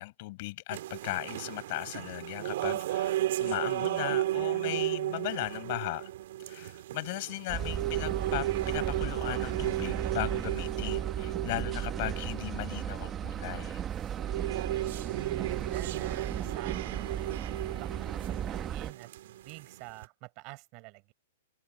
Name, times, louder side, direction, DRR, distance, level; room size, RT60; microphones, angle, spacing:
voice 1, 0.0-3.1 3.4-6.1 6.5-13.8, left 21 dB, 50° left, 5.5 m, -37 dB
sound 1, 0.7-13.4 13.9-20.0, right 14 dB, 60° right, 3.8 m, -34 dB
sound 2, 7.5-18.9, right 9 dB, 25° right, 1.1 m, -36 dB
voice 2, 7.6-8.2 14.9-21.1, right 29 dB, 45° right, 7.7 m, -47 dB
hypercardioid pair, 120°, 0 cm